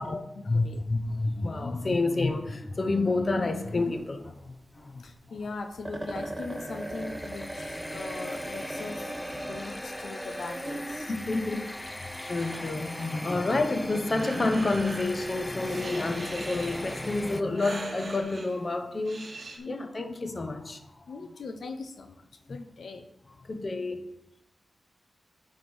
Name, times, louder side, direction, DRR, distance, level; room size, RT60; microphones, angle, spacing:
voice 1, 0.0-5.0 5.3-5.4 11.1-19.2 19.6-21.0 22.5-22.6 23.4-24.0, left 2 dB, 40° left, 6 dB, 0.7 m, -29 dB
sound 1, 3.5-4.3 4.6-4.7 5.1-5.2 5.5-5.6 5.8-12.2 13.3-13.4 13.7-14.0 14.3-14.6 15.0-15.1 15.5-15.9 16.5-18.2, right 1 dB, 20° right, 0.8 m, -39 dB
voice 2, 5.0-11.1 19.6-19.9 21.1-22.2 22.5-23.0, left 3 dB, 80° left, 6 dB, 0.6 m, -40 dB
sound 2, 6.2-17.4, left 1 dB, 10° left, 0.3 m, -39 dB
Breathing, 12.4-19.6, right 2 dB, 60° right, 1.2 m, -43 dB
9.3 x 3.4 x 6.1 m, 0.88 s
wide cardioid pair, 90°, 0 cm